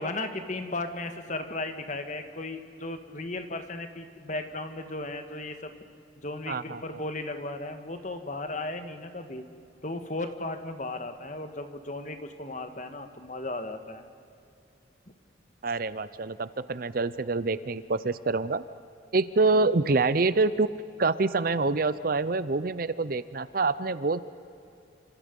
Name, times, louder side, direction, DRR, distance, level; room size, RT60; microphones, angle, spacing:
voice 1, 0.0-5.7 6.2-9.4 9.8-14.0, left 2 dB, 40° left, 7 dB, 1.6 m, -35 dB
voice 2, 6.5-6.8 15.6-18.6 19.1-20.7 21.0-24.2, right 3 dB, 45° right, 15 dB, 0.6 m, -26 dB
28.5 x 26.0 x 5.4 m, 2.5 s
head